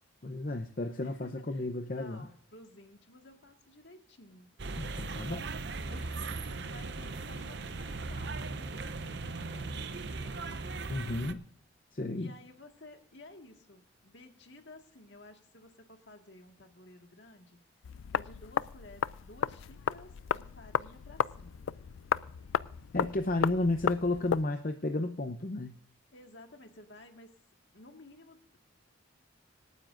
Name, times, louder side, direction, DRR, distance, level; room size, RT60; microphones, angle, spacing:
voice 1, 0.2-2.3 4.7-5.5 10.9-11.4 11.9-12.3 22.9-25.8, left 2 dB, 40° left, 5 dB, 0.7 m, -32 dB
voice 2, 1.0-1.7 1.9-4.5 5.9-11.3 12.2-17.6 18.1-21.6 26.1-27.4 27.7-28.6, left 2 dB, 60° left, 4 dB, 1.8 m, -54 dB
sound 1, 4.6-11.3, right 3 dB, 55° right, 0.7 m, -38 dB
sound 2, 17.8-24.4, left 7 dB, 80° left, 0.4 m, -34 dB
26.0 x 9.5 x 2.6 m, 0.63 s
head